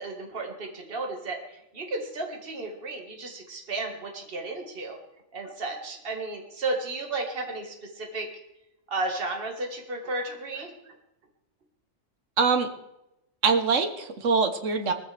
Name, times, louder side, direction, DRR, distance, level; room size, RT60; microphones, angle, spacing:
voice 1, 0.0-5.0 5.3-8.3 8.9-10.7, right 2 dB, 45° right, 1 dB, 2.0 m, -33 dB
voice 2, 12.4-12.7 13.4-14.9, right 5 dB, 70° right, 7 dB, 1.6 m, -23 dB
20.0 x 14.5 x 3.4 m, 0.90 s
omnidirectional pair, 1.4 m